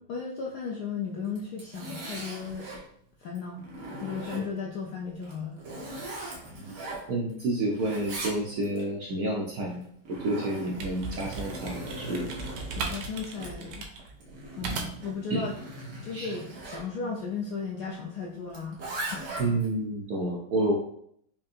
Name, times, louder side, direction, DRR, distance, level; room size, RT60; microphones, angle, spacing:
voice 1, 0.1-2.7 3.2-3.6 4.0-5.6 12.7-13.9 14.5-15.5 16.0-18.8 19.1-19.3, left 5 dB, 75° left, -1 dB, 0.9 m, -35 dB
Zipper (clothing), 1.2-2.8 3.4-4.7 5.2-7.4 7.7-8.8 9.7-16.9 18.5-19.7, right 1 dB, 55° right, 1.3 m, -40 dB
voice 2, 7.1-12.3 15.3-15.4 16.1-16.3 19.4-20.7, right 1 dB, 70° right, -2 dB, 0.9 m, -29 dB
sound 1, 10.7-15.2, right 4 dB, 85° right, 1.4 m, -37 dB
5.3 x 2.6 x 2.4 m, 0.69 s
omnidirectional pair, 2.2 m